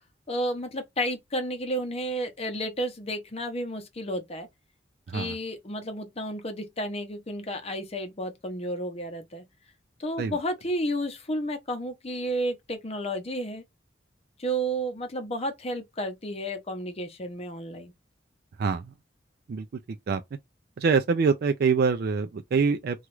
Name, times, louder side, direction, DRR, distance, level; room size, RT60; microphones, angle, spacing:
voice 1, 0.3-4.5 5.1-9.4 10.0-13.6 14.4-17.9, equal, 35° left, 0.7 m, -32 dB
voice 2, 18.6-18.9 19.5-19.7 20.1-20.2 20.8-23.1, right 5 dB, 55° right, 0.3 m, -25 dB
2.9 x 2.4 x 3.0 m
head